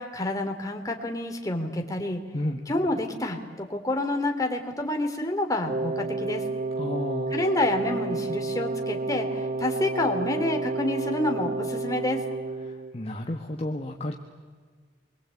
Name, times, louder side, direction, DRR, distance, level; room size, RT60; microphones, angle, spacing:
voice 1, 0.0-2.2 2.7-6.4 7.3-12.2, left 1 dB, 20° left, 3 dB, 3.0 m, -28 dB
Wind instrument woodwind instrument, 5.6-13.0, right 3 dB, 40° right, 0.7 m, -30 dB
voice 2, 6.8-7.3 12.7-14.1, left 1 dB, 35° left, 2 dB, 1.5 m, -32 dB
28.0 x 23.0 x 8.5 m, 1.5 s
head